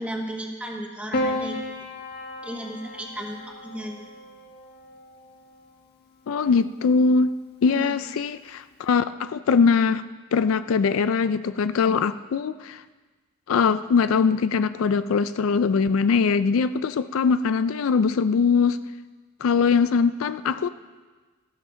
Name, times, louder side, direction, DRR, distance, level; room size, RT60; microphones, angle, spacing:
voice 1, 0.0-1.6 2.4-4.0 7.7-8.0, right 1 dB, 5° right, 0 dB, 1.5 m, -34 dB
Piano, 1.1-5.6 6.8-7.5, left 1 dB, 55° left, 1.2 m, -33 dB
voice 2, 6.3-7.3 7.6-10.0 10.3-12.8 13.5-18.8 19.4-20.7, left 5 dB, 75° left, 13 dB, 0.4 m, -21 dB
13.5 x 12.0 x 3.9 m, 1.3 s
head